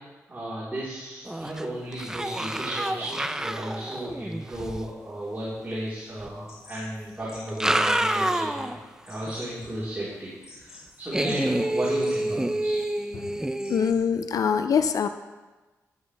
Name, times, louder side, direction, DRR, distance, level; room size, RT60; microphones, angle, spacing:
voice 1, 0.3-8.7 9.0-12.8, right 1 dB, 30° right, -8 dB, 4.2 m, -34 dB
sound 1, 1.2-1.6 1.9-4.8 6.2-6.3 7.4-8.8 9.3-9.4 11.1-13.9, right 1 dB, 10° right, 0.7 m, -28 dB
sound 2, 6.5-14.3, left 3 dB, 50° left, 4.2 m, -51 dB
voice 2, 13.7-15.1, left 7 dB, 70° left, 9 dB, 0.6 m, -24 dB
12.5 x 12.5 x 3.5 m, 1.2 s
cardioid pair, 75°, 6 cm